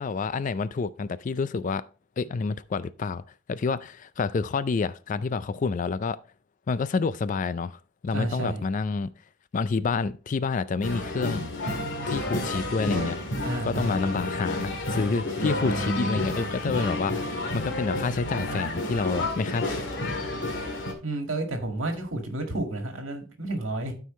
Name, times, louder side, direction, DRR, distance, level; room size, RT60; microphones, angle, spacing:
voice 1, 0.0-1.8 2.2-3.2 3.5-6.2 6.7-9.1 9.5-11.5 12.1-13.2 13.7-19.8, left 4 dB, 40° left, 0.3 m, -28 dB
voice 2, 8.1-8.6 13.4-14.0 21.0-23.9, right 1 dB, 80° right, 1.9 m, -31 dB
sound 1, 10.8-20.9, left 1 dB, 65° left, 1.9 m, -30 dB
12.5 x 4.7 x 3.1 m
head